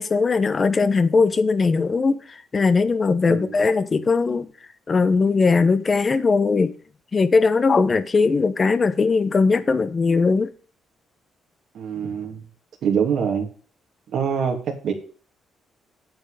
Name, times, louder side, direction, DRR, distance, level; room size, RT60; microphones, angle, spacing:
voice 1, 0.0-4.5 4.9-6.7 7.1-10.5, left 4 dB, 35° left, 0.9 m, -19 dB
voice 2, 11.7-12.4 12.8-13.5 14.1-14.9, right 7 dB, 70° right, 2.8 m, -24 dB
9.1 x 7.9 x 5.0 m
cardioid pair, 90°, 0 cm